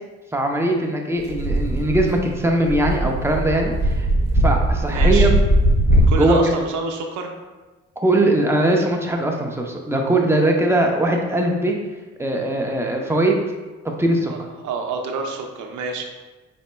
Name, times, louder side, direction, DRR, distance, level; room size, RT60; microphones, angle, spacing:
voice 1, 0.3-4.1 4.4-5.4 5.9-6.4 8.0-11.8 12.2-13.4 13.8-14.3, right 1 dB, 10° right, 1 dB, 0.6 m, -20 dB
sound 1, 1.2-6.2, right 1 dB, 35° left, 1.2 m, -19 dB
voice 2, 4.9-5.3 6.1-7.3 14.3-16.1, right 4 dB, 80° right, 3 dB, 0.6 m, -28 dB
4.2 x 4.1 x 2.2 m, 1.2 s
cardioid pair, 85°, 30 cm